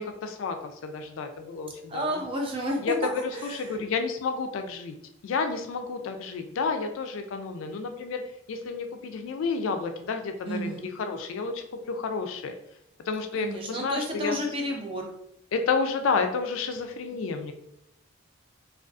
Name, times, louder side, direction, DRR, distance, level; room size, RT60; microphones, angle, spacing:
voice 1, 0.0-2.2 2.8-5.0 5.2-8.2 8.5-12.5 13.1-14.4 15.5-17.5, left 4 dB, 75° left, 6 dB, 0.3 m, -30 dB
voice 2, 1.9-3.0 3.3-3.8 10.5-10.9 13.3-15.1, equal, 25° right, 1 dB, 0.4 m, -31 dB
2.4 x 2.3 x 2.3 m, 0.79 s
head